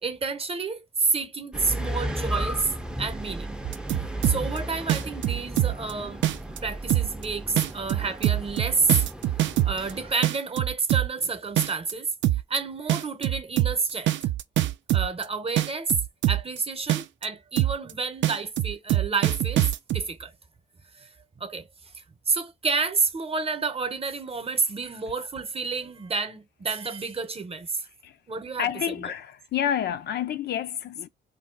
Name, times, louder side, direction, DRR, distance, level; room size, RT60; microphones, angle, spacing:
voice 1, 0.0-3.5 3.9-9.1 9.6-12.1 12.5-14.2 14.9-16.0 16.3-20.3 20.9-21.1 21.4-21.7 21.9-27.9 28.3-28.7 29.0-29.1, right 4 dB, 30° right, 0.8 m, -29 dB
sound 1, 1.5-10.1, right 1 dB, 5° right, 0.5 m, -34 dB
sound 2, 3.6-4.6 4.9-5.9 6.2-6.6 6.9-7.2 7.6-9.9 10.2-11.2 11.6-11.9 12.2-12.6 12.9-15.2 15.6-16.6 16.9-17.3 17.6-17.9 18.2-20.0, right 14 dB, 70° right, 0.4 m, -23 dB
voice 2, 28.6-31.1, left 9 dB, 55° left, 0.4 m, -29 dB
2.6 x 2.3 x 3.8 m
cardioid pair, 90°, 20 cm